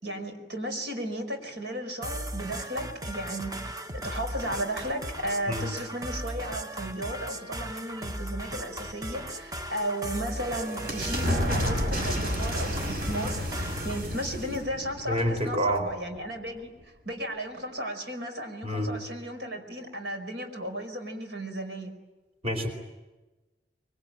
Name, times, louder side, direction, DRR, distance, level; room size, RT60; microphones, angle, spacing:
voice 1, 0.0-3.5 3.9-21.9, right 1 dB, 75° right, 5 dB, 5.1 m, -34 dB
sound 1, 2.0-14.0, right 1 dB, 20° right, 1.0 m, -37 dB
sound 2, 9.7-16.2, equal, 60° right, 6.5 m, -31 dB
voice 2, 15.1-15.8 18.6-18.9 22.4-22.7, equal, 35° right, 5 dB, 4.3 m, -27 dB
24.5 x 24.0 x 9.0 m, 1.1 s
head